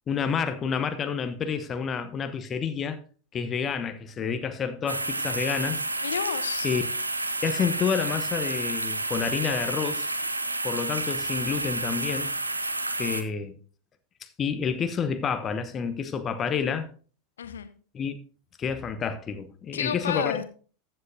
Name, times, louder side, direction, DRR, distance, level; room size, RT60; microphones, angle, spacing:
voice 1, 0.1-3.0 3.3-5.8 6.6-6.8 7.4-10.1 10.6-12.3 13.0-13.5 14.4-16.9 17.9-18.2 18.6-20.4, left 6 dB, 25° left, 1.0 m, -29 dB
sound 1, 4.9-13.2, right 2 dB, 85° right, 0.7 m, -30 dB
voice 2, 6.0-6.7 17.4-17.7 19.7-20.4, left 8 dB, 70° left, 0.8 m, -30 dB
14.0 x 7.8 x 2.8 m
figure-of-eight pair, 85°, 0 cm